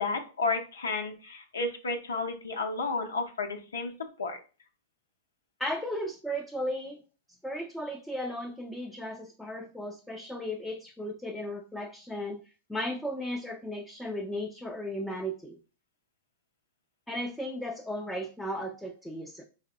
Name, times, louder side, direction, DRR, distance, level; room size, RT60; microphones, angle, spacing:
voice 1, 0.0-3.9 4.2-4.4, left 3 dB, 90° left, 3 dB, 0.6 m, -32 dB
voice 2, 5.6-7.0 7.4-12.4 12.7-15.6 17.1-19.4, equal, 5° left, 0 dB, 0.4 m, -35 dB
4.8 x 2.8 x 2.2 m, 0.35 s
hypercardioid pair, 115°, 0 cm